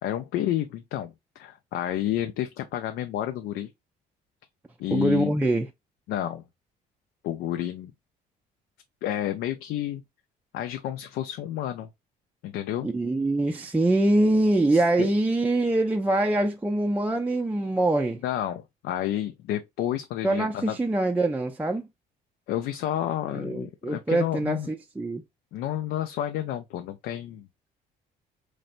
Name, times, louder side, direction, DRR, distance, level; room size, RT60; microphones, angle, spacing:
voice 1, 0.0-3.7 4.8-5.3 6.1-6.4 7.2-7.9 9.0-10.0 10.5-11.9 12.4-12.9 14.7-15.1 18.2-20.8 22.5-24.7 25.5-27.5, left 12 dB, 80° left, 0.5 m, -30 dB
voice 2, 4.9-5.7 12.8-18.2 20.2-21.8 23.3-25.2, right 2 dB, 10° right, 0.4 m, -24 dB
4.1 x 3.2 x 2.5 m
cardioid pair, 110°, 17 cm